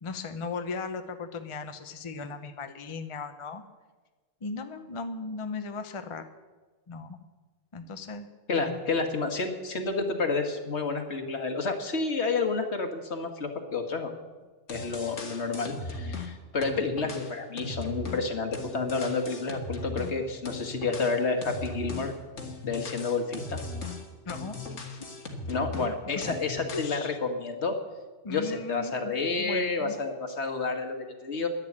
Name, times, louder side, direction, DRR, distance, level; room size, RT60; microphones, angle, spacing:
voice 1, 0.0-3.6 4.4-6.2 6.9-7.2 7.7-8.3 8.5-8.8 24.3-24.6 24.9-25.1 26.1-26.3 26.7-27.2 28.2-29.9, left 4 dB, 30° left, 7 dB, 0.7 m, -37 dB
voice 2, 8.5-14.1 14.7-22.1 22.6-23.6 25.5-27.8 28.3-31.5, left 4 dB, 70° left, 5 dB, 1.7 m, -30 dB
sound 1, 14.4-14.5 14.7-16.3 16.6-20.2 20.4-25.9 26.2-27.0, left 3 dB, 90° left, 2.0 m, -38 dB
11.0 x 10.5 x 8.6 m, 1.3 s
omnidirectional pair, 1.2 m